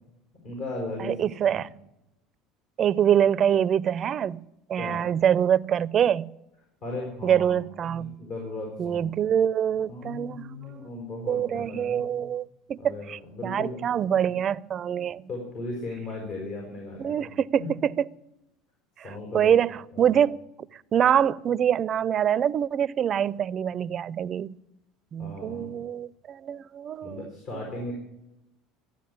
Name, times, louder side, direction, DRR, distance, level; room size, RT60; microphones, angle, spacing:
voice 1, 0.4-1.2 1.5-1.6 4.8-5.1 6.8-9.1 9.9-12.3 12.8-13.8 15.3-17.2 17.6-17.7 19.0-19.6 19.9-20.2 25.2-25.7 27.0-27.9, left 2 dB, 65° left, 5.4 m, -37 dB
voice 2, 1.0-1.7 2.8-4.4 4.7-6.3 7.2-8.2 8.8-10.8 11.3-15.3 17.0-18.1 19.0-20.4 20.9-24.6 25.1-27.6, right 9 dB, 40° right, 0.4 m, -25 dB
14.0 x 9.2 x 8.5 m
supercardioid pair, 95°, 0 cm